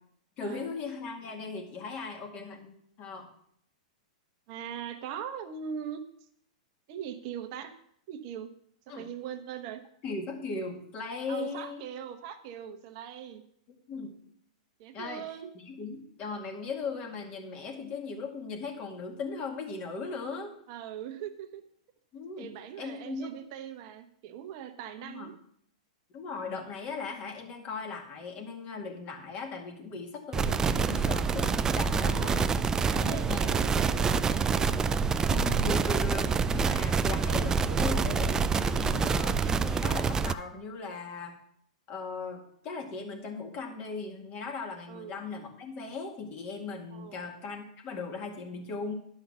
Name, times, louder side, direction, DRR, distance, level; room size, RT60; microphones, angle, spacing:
voice 1, 0.4-3.3 8.9-9.1 10.0-11.8 13.9-14.2 14.9-15.2 15.5-20.5 22.1-22.5 22.8-23.3 25.0-25.3 26.1-32.6 33.0-33.6 35.3-41.3 41.9-48.9, left 4 dB, 35° left, 3 dB, 2.1 m, -38 dB
voice 2, 4.5-6.0 6.9-7.7 8.1-8.5 8.9-9.8 11.3-13.4 14.8-15.5 20.7-21.6 22.4-25.4 32.0-32.4 32.9-34.7 44.9-45.2 46.9-47.3, right 9 dB, 50° right, 7 dB, 1.0 m, -40 dB
sound 1, 30.3-40.3, right 5 dB, 15° right, 0.4 m, -27 dB
10.5 x 5.6 x 6.0 m, 0.68 s
hypercardioid pair, 125°, 4 cm